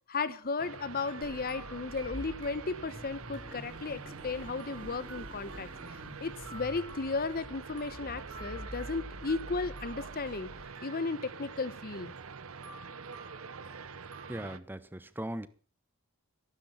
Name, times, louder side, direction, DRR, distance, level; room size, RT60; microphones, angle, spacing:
voice 1, 0.1-5.7 6.2-10.5 10.8-12.1, left 4 dB, 45° left, 0.9 m, -35 dB
sound 1, 0.6-14.6, right 5 dB, 70° right, 0.8 m, -46 dB
sound 2, 0.8-3.1 3.3-14.5, right 2 dB, 85° right, 4.0 m, -54 dB
Car / Idling / Accelerating revving vroom, 1.2-10.7, equal, 25° right, 3.8 m, -47 dB
voice 2, 14.3-15.5, right 1 dB, 10° right, 0.9 m, -39 dB
14.0 x 12.5 x 5.7 m
head